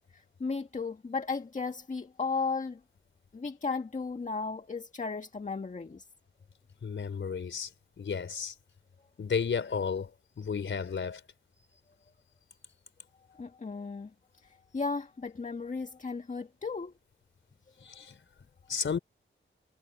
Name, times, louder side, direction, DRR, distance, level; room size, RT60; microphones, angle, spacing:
voice 1, 0.1-2.8 3.3-6.1 13.3-14.1 14.4-16.9 18.0-18.1, left 4 dB, 40° left, 1.8 m, -35 dB
voice 2, 6.8-7.7 8.0-8.5 9.2-10.1 10.4-11.2 17.8-18.1 18.7-19.0, left 6 dB, 75° left, 4.3 m, -32 dB
wide cardioid pair, 90°, 20 cm